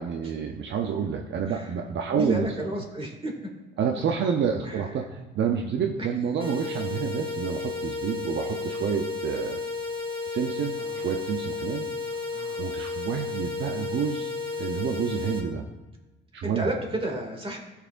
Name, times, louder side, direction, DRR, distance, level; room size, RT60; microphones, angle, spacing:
voice 1, 0.0-2.5 3.8-9.6 10.3-10.7 11.0-12.2 12.6-14.3 14.6-15.6 16.3-16.7, right 7 dB, 65° right, 3 dB, 0.7 m, -29 dB
voice 2, 2.1-3.3 4.6-4.9 6.0-6.1 10.8-11.1 12.3-12.7 16.4-17.6, right 1 dB, 25° right, 0 dB, 2.3 m, -32 dB
sound 1, 6.4-15.4, left 4 dB, 25° left, 2.2 m, -33 dB
15.0 x 5.7 x 2.6 m, 1.1 s
cardioid pair, 90°, 20 cm